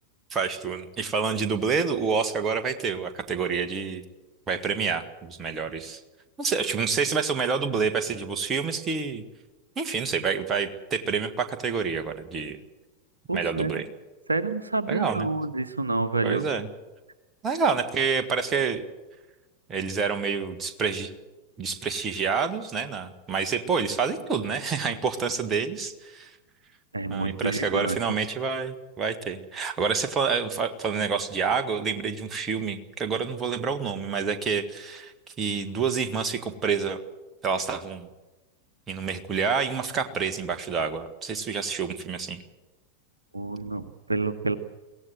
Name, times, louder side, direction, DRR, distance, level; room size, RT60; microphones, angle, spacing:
voice 1, 0.3-4.0 4.5-6.0 6.4-9.2 9.8-12.6 13.3-13.8 14.9-15.3 16.2-16.7 17.4-18.8 19.7-21.1 21.6-26.3 27.1-37.0 37.4-38.1 38.9-42.4, right 5 dB, 25° right, 6 dB, 1.7 m, -28 dB
voice 2, 13.3-13.8 14.3-16.4 26.9-28.0 43.3-44.6, right 3 dB, 80° right, 11 dB, 1.0 m, -28 dB
23.0 x 17.0 x 7.9 m, 1.1 s
figure-of-eight pair, 90°, 0 cm